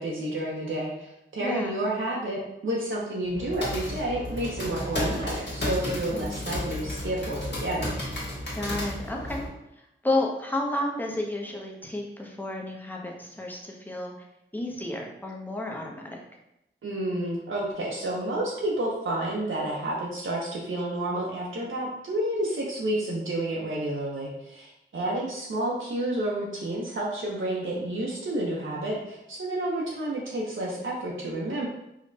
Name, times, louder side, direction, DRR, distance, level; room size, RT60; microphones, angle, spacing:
voice 1, 0.0-7.9 16.8-31.7, right 1 dB, 75° right, -4 dB, 0.6 m, -30 dB
voice 2, 1.4-1.8 6.1-6.4 8.6-9.4 10.0-14.1 14.5-16.2, left 1 dB, 10° left, 0 dB, 0.6 m, -31 dB
sound 1, 3.2-9.5, left 1 dB, 55° left, 1.3 m, -33 dB
4.9 x 2.1 x 2.6 m, 0.85 s
wide cardioid pair, 95°, 21 cm